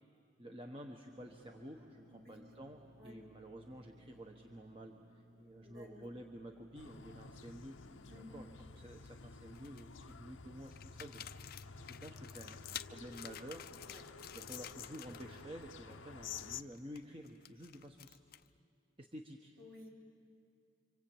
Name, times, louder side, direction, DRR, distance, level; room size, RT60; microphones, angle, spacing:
voice 1, 0.4-7.8 8.1-11.2 11.8-13.7 14.3-18.2 19.0-19.5, equal, 25° right, 2 dB, 1.2 m, -51 dB
sound 1, 1.1-12.0, right 1 dB, 85° right, 3.0 m, -64 dB
voice 2, 5.6-6.1 8.1-8.5 13.8-14.4 19.6-19.9, left 2 dB, 50° right, -1 dB, 4.4 m, -55 dB
sound 2, 6.7-16.6, left 5 dB, 75° left, 0.8 m, -51 dB
sound 3, 8.8-9.1 9.5-10.1 10.7-15.4 15.7-16.0 16.3-18.6, left 11 dB, 50° left, 0.6 m, -51 dB
26.5 x 25.5 x 8.8 m, 2.4 s
head